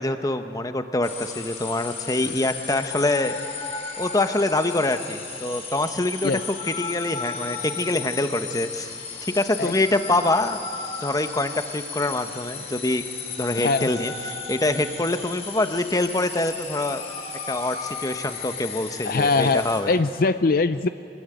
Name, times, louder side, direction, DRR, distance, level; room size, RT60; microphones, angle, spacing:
voice 1, 0.0-3.4 4.0-8.9 9.3-10.6 11.0-13.0 13.4-17.1 17.5-19.9, left 2 dB, 20° left, 8 dB, 1.0 m, -25 dB
sound 1, 1.0-19.8, left 5 dB, 35° left, 4.5 m, -35 dB
voice 2, 13.6-13.9 19.0-20.9, left 3 dB, 55° left, 11 dB, 0.5 m, -22 dB
25.5 x 20.5 x 9.2 m, 2.6 s
head